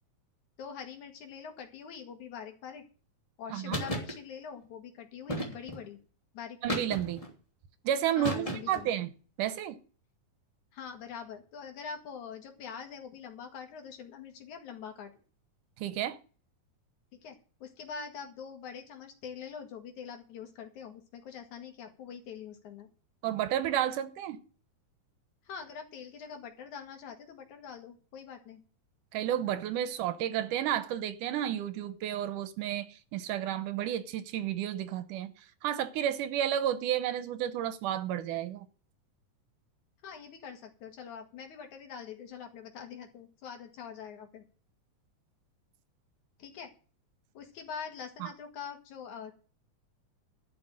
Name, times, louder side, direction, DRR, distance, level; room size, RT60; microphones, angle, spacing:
voice 1, 0.6-2.8 3.4-6.0 6.3-6.8 8.2-8.9 10.7-15.1 17.2-22.9 25.4-28.6 40.0-44.4 46.4-46.7 47.3-49.3, left 7 dB, 70° left, 3.3 m, -44 dB
voice 2, 3.5-3.8 6.6-7.2 7.8-9.1 9.4-9.8 15.8-16.2 23.2-24.4 29.1-35.3 35.6-38.7 48.2-48.3, right 11 dB, 85° right, 2.5 m, -31 dB
sound 1, 3.7-4.1 5.3-5.8 6.7-7.3 8.2-8.9, equal, 10° left, 2.7 m, -34 dB
12.5 x 5.9 x 9.0 m
omnidirectional pair, 3.7 m